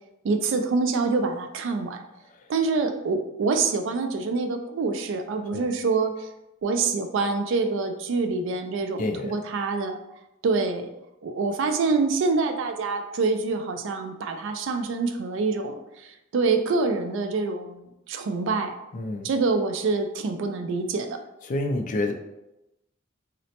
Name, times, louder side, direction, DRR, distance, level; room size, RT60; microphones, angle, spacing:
voice 1, 0.2-2.0 2.5-6.3 6.6-10.0 10.4-10.9 11.2-18.7 19.2-21.2, right 4 dB, 60° right, 7 dB, 0.3 m, -26 dB
voice 2, 9.0-9.4 18.9-19.3 21.4-22.1, left 2 dB, 40° left, 5 dB, 0.3 m, -28 dB
3.9 x 2.1 x 2.8 m, 0.91 s
head